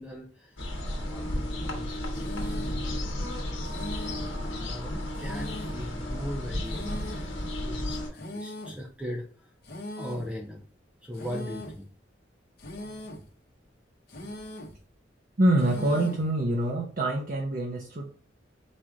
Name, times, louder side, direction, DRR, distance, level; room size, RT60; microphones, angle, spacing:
voice 1, 0.0-3.0 4.0-9.5 10.0-10.7 11.0-11.9 12.8-13.2, equal, 5° right, 0 dB, 0.5 m, -40 dB
sound 1, 0.6-8.1, left 1 dB, 85° left, 1.1 m, -33 dB
sound 2, 2.1-2.8 3.6-4.4 5.1-5.9 6.6-7.3 8.1-8.9 9.6-10.4 11.1-11.9 12.6-13.3 14.1-14.8 15.6-16.3, left 1 dB, 55° left, 0.9 m, -40 dB
voice 2, 15.4-18.0, right 1 dB, 50° right, 0 dB, 0.7 m, -25 dB
4.2 x 2.5 x 4.7 m, 0.41 s
head